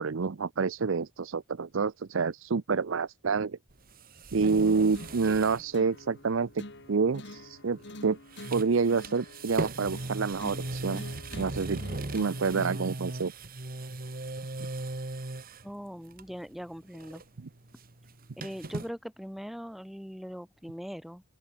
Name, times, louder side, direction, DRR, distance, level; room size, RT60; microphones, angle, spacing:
voice 1, 0.0-3.6 4.3-6.6 6.9-8.2 8.5-11.0 11.4-13.3, right 5 dB, 70° right, 0.6 m, -28 dB
sound 1, 3.7-5.7 6.0-6.1 7.8-8.0 8.3-15.7 16.1-16.5 16.8-18.9, right 2 dB, 45° right, 1.7 m, -38 dB
sound 2, 4.9-12.9, left 1 dB, 60° left, 4.1 m, -47 dB
voice 2, 15.6-17.2 18.4-21.2, equal, ahead, 2.9 m, -41 dB
open air
head